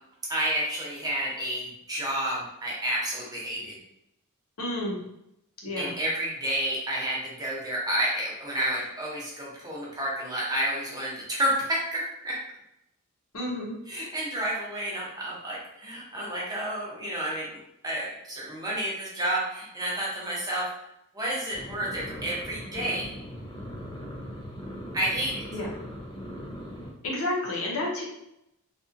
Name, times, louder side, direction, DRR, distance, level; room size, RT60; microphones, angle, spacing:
voice 1, 0.3-3.8 5.8-12.4 13.9-17.5 17.8-20.7 21.1-23.1 24.9-25.4, right 1 dB, 20° right, -5 dB, 0.8 m, -30 dB
voice 2, 4.6-5.0 5.6-5.9 13.3-13.7 25.5-25.7 27.0-28.0, left 1 dB, 70° left, -3 dB, 0.8 m, -30 dB
sound 1, 21.5-26.9, equal, 25° left, 0.5 m, -39 dB
2.7 x 2.4 x 2.6 m, 0.83 s
head